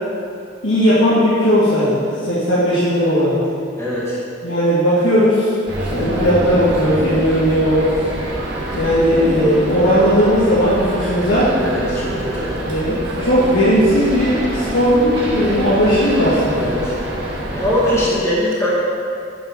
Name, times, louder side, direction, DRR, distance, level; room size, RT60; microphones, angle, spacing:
voice 1, 0.6-3.4 4.4-5.5 5.8-7.9 8.7-11.5 12.7-16.6, equal, 75° left, -11 dB, 2.3 m, -16 dB
voice 2, 3.8-4.2 11.6-12.6 16.6-17.0 17.5-18.7, left 1 dB, 15° left, -9 dB, 2.1 m, -21 dB
sound 1, 5.7-18.1, right 1 dB, 60° right, 1.8 m, -26 dB
9.0 x 7.2 x 5.6 m, 2.4 s
head